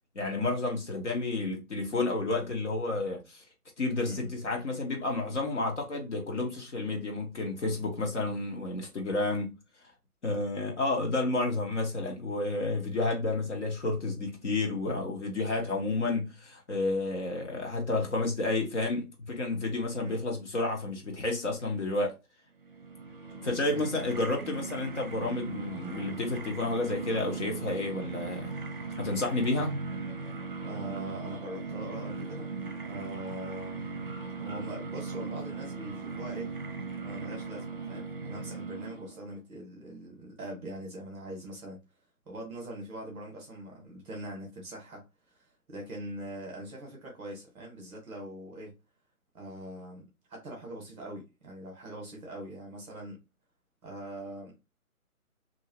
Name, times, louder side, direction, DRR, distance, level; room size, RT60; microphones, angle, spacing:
voice 1, 0.1-3.4 3.8-9.6 10.2-22.1 23.3-28.5 29.0-29.7, left 2 dB, 50° left, 0.9 m, -31 dB
voice 2, 4.0-4.3 19.9-20.2 23.6-24.1 30.7-32.5 32.8-34.1 34.4-36.5 37.0-41.8 42.2-48.7 49.3-53.2 53.8-54.6, right 1 dB, 5° right, 0.8 m, -42 dB
sound 1, 22.6-39.3, right 4 dB, 35° right, 0.7 m, -38 dB
2.7 x 2.4 x 2.8 m
hypercardioid pair, 160°, 45 cm